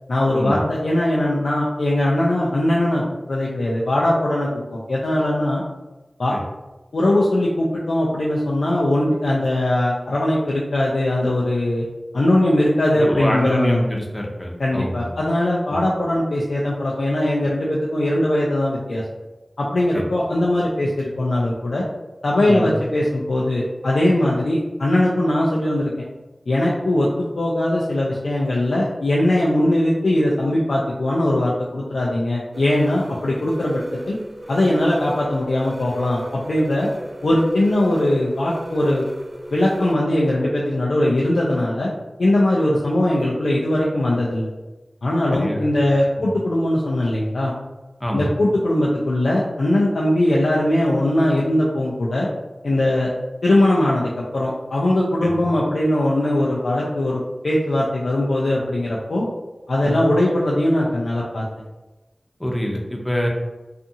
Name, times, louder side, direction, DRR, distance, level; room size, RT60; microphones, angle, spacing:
voice 1, 0.1-5.6 6.2-6.4 6.9-11.8 12.1-13.9 14.6-19.0 19.6-21.8 22.2-25.9 26.5-34.2 34.5-36.2 36.5-36.9 37.2-39.1 39.5-41.9 42.2-44.5 45.0-47.5 48.1-52.3 52.6-53.1 53.4-59.3 59.7-61.5, left 1 dB, 90° left, -5 dB, 0.4 m, -20 dB
voice 2, 13.0-15.2 15.7-15.8 19.9-20.0 22.5-22.7 45.3-45.7 46.2-46.3 48.0-48.3 55.2-55.4 59.8-60.0 62.4-63.3, equal, 20° left, 0 dB, 0.6 m, -25 dB
sound 1, 32.5-40.0, right 1 dB, 20° right, 0.3 m, -35 dB
2.6 x 2.4 x 2.6 m, 1.1 s
cardioid pair, 40°, 0 cm